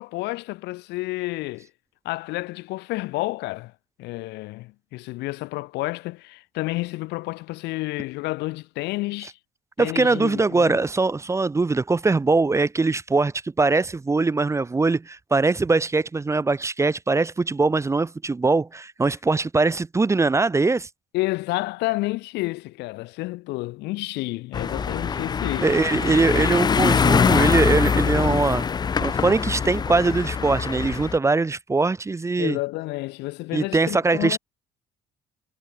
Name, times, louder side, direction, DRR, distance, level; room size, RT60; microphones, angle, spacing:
voice 1, 0.0-1.7 2.1-3.7 4.0-9.3 9.8-10.8 21.1-26.0 32.4-34.4, left 20 dB, 90° left, 1.8 m, -30 dB
voice 2, 9.8-20.9 25.6-28.7 29.0-32.6 33.5-34.4, right 3 dB, 15° right, 0.7 m, -22 dB
sound 1, 24.5-31.2, left 6 dB, 25° left, 0.5 m, -23 dB
cardioid pair, 110°, 17 cm